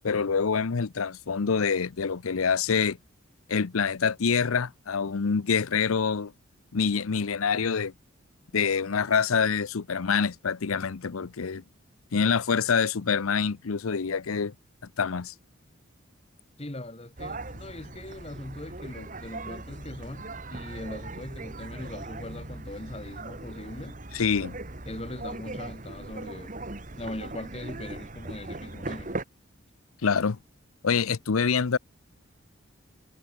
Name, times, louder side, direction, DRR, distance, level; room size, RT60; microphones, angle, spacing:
voice 1, 0.0-3.0 3.5-6.3 6.7-7.9 8.5-11.6 12.1-14.5 15.0-15.3 24.1-24.6 30.0-30.4 30.8-31.8, left 5 dB, 90° left, 0.7 m, -26 dB
voice 2, 16.6-24.0 24.9-26.6 27.0-29.2, left 1 dB, 30° left, 1.6 m, -40 dB
sound 1, 17.2-29.2, right 2 dB, 40° right, 1.8 m, -39 dB
head